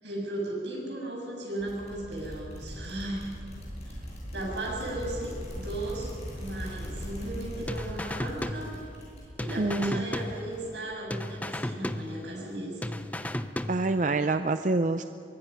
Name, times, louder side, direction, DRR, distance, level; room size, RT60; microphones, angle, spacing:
voice 1, 0.0-3.3 3.9-4.0 4.3-8.7 9.4-12.8, right 1 dB, 85° right, -2 dB, 7.4 m, -36 dB
sound 1, 1.6-10.8, equal, 35° left, 7.9 m, -40 dB
sound 2, 7.7-9.1 9.4-10.8 11.1-12.5 12.8-14.1, left 1 dB, 10° left, 0.6 m, -35 dB
voice 2, 9.6-10.0 13.7-15.0, right 2 dB, 45° right, 9 dB, 0.5 m, -26 dB
24.0 x 23.0 x 5.9 m, 2.5 s
head